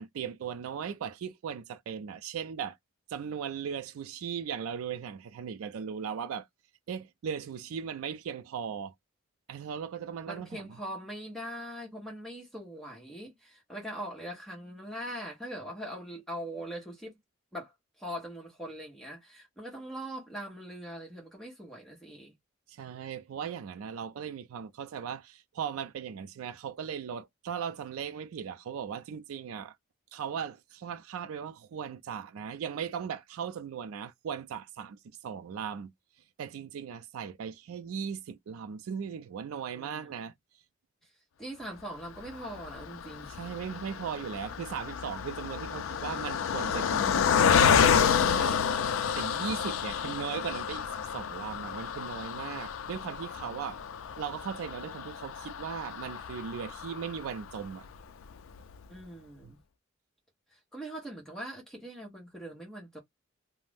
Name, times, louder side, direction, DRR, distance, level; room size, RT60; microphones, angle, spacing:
voice 1, 0.0-2.8 3.1-6.5 6.9-8.9 9.5-10.7 22.7-29.8 30.1-35.9 36.4-40.3 43.4-47.3 47.8-48.6 49.2-53.8 54.2-57.9 59.4-59.5, right 7 dB, 85° right, 0.4 m, -38 dB
voice 2, 10.3-17.2 17.5-22.3 39.7-40.1 41.0-41.1 41.4-43.4 58.9-59.6 60.5-63.0, equal, ahead, 1.0 m, -42 dB
Car passing by, 42.2-57.7 58.2-58.3 58.6-58.8, left 7 dB, 75° left, 0.4 m, -29 dB
2.5 x 2.0 x 3.3 m
head